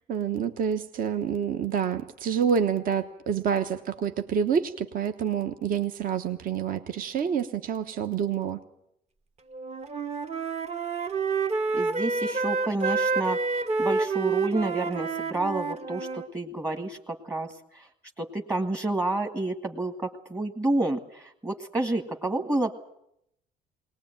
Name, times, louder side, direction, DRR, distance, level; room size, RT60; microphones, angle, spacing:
voice 1, 0.1-8.6, right 7 dB, 55° right, 8 dB, 1.2 m, -27 dB
Wind instrument woodwind instrument, 9.5-16.3, right 4 dB, 40° right, 1.3 m, -28 dB
voice 2, 11.7-17.9 18.2-22.8, right 2 dB, 20° right, 3 dB, 1.7 m, -29 dB
20.5 x 19.5 x 9.1 m, 0.76 s
cardioid pair, 110°, 17 cm